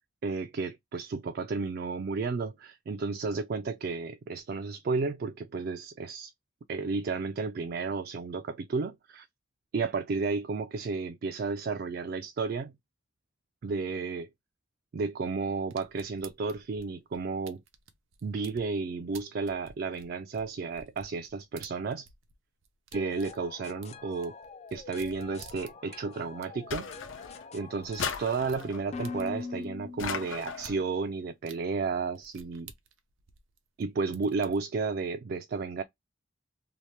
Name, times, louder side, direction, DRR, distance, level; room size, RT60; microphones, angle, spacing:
voice 1, 0.2-6.3 6.7-9.3 9.7-12.7 13.6-14.3 14.9-17.6 18.2-22.1 22.9-24.3 24.7-26.9 27.5-32.7 33.8-35.8, right 4 dB, 50° right, 0.3 m, -32 dB
sound 1, 15.7-18.7 19.1-22.4 22.6-26.0 26.4-26.5 26.7-26.8 27.1-27.2 27.5-29.7 30.5-30.8 31.5-31.6 32.2-33.8 34.1-34.6, right 6 dB, 90° right, 0.6 m, -52 dB
sound 2, 22.9-30.7, left 4 dB, 35° left, 0.4 m, -44 dB
sound 3, 26.7-27.5 28.0-28.9 30.0-30.8, left 6 dB, 85° left, 0.6 m, -36 dB
2.9 x 2.1 x 3.1 m
head